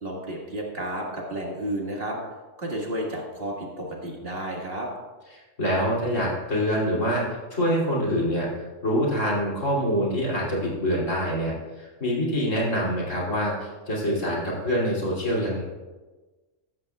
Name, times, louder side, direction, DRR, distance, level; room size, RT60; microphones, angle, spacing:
voice 1, 0.0-2.2 2.6-4.9, right 1 dB, 50° right, -2 dB, 2.0 m, -32 dB
voice 2, 5.6-7.2 7.5-8.5 8.8-15.6, equal, 75° left, -4 dB, 3.4 m, -25 dB
13.5 x 13.0 x 2.4 m, 1.3 s
omnidirectional pair, 1.3 m